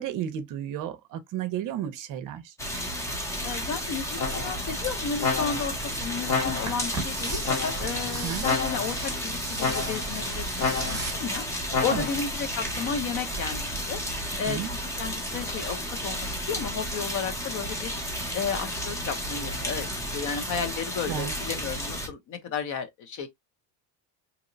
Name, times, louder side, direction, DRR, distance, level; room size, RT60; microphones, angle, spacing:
voice 1, 0.0-2.5 8.2-8.4 11.9-12.1 14.5-14.7 21.1-21.3, right 10 dB, 45° right, 0.6 m, -32 dB
sound 1, 2.6-22.1, equal, 10° left, 0.3 m, -32 dB
voice 2, 3.4-5.7 6.0-11.4 11.8-14.0 14.4-17.9 18.3-19.9 20.1-23.3, left 6 dB, 45° left, 0.7 m, -33 dB
sound 2, 4.2-4.7 5.2-5.8 6.3-6.9 7.4-8.0 8.4-9.1 9.6-10.2 10.6-11.2 11.7-12.3, left 5 dB, 80° left, 1.7 m, -30 dB
sound 3, 6.3-11.1, right 3 dB, 10° right, 0.8 m, -38 dB
2.9 x 2.0 x 3.8 m
cardioid pair, 175°, 43 cm